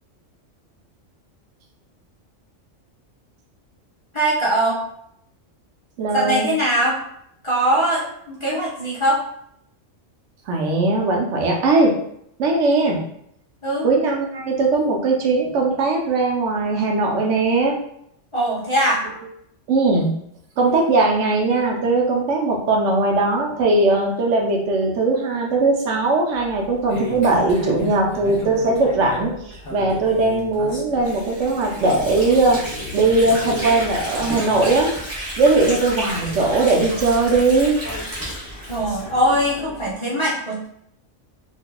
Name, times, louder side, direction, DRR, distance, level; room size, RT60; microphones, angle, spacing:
voice 1, 4.1-4.8 6.1-7.0 7.4-9.2 13.6-13.9 18.3-19.0 38.7-40.7, right 1 dB, 30° left, -6 dB, 0.7 m, -21 dB
voice 2, 6.0-6.5 10.5-11.9 12.4-13.0 13.8-17.8 19.7-20.1 20.6-32.6 32.9-34.9 35.4-37.7, right 3 dB, 75° right, 0 dB, 1.0 m, -19 dB
sound 1, 26.3-39.9, left 1 dB, 45° left, 1.0 m, -36 dB
Water / Sink (filling or washing), 31.0-39.6, equal, 15° right, 1.0 m, -32 dB
3.7 x 2.7 x 2.2 m, 0.72 s
omnidirectional pair, 1.3 m